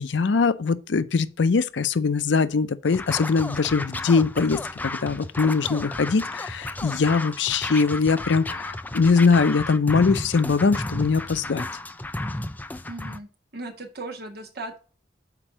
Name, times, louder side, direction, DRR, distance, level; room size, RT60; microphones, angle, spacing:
voice 1, 0.0-11.7, left 4 dB, 90° left, 0.5 m, -22 dB
Scratching (performance technique), 2.9-13.2, left 2 dB, 10° left, 0.3 m, -33 dB
voice 2, 12.9-14.8, right 2 dB, 60° right, 1.5 m, -37 dB
5.9 x 4.5 x 6.0 m
head